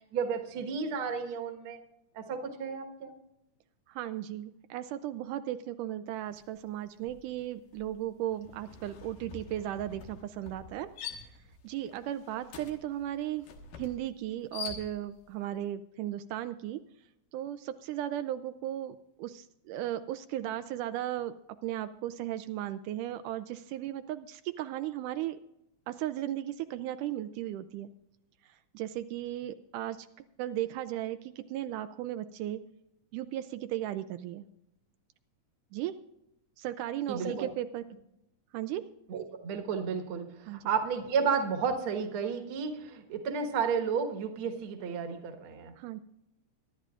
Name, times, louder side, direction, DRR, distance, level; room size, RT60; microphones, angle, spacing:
voice 1, 0.1-1.8 2.2-3.1 37.1-37.5 39.1-45.7, right 6 dB, 50° right, 6 dB, 1.8 m, -32 dB
voice 2, 3.9-10.9 11.6-13.5 13.8-16.8 17.3-21.4 21.6-25.4 25.9-27.9 28.5-30.1 30.4-32.6 33.1-34.4 35.7-36.0 36.6-37.9 38.5-38.9 40.5-40.6 45.8-46.0, right 12 dB, 85° right, 10 dB, 2.1 m, -36 dB
sound 1, 6.3-6.6 6.9-15.3, left 6 dB, 85° left, 3.0 m, -46 dB
23.5 x 11.5 x 2.5 m, 0.85 s
omnidirectional pair, 3.7 m